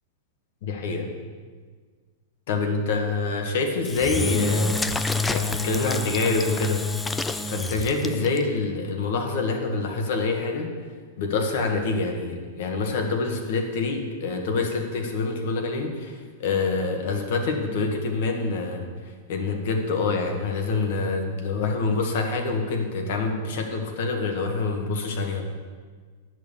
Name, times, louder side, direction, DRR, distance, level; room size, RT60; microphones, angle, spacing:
voice 1, 0.6-1.1 2.5-4.8 5.3-6.8 7.5-10.7 11.2-18.9 19.3-25.4, left 3 dB, 65° left, 4 dB, 1.7 m, -26 dB
Engine / Drill, 3.8-8.4, left 3 dB, 10° left, 0.4 m, -27 dB
10.5 x 6.2 x 7.3 m, 1.5 s
supercardioid pair, 150°, 0 cm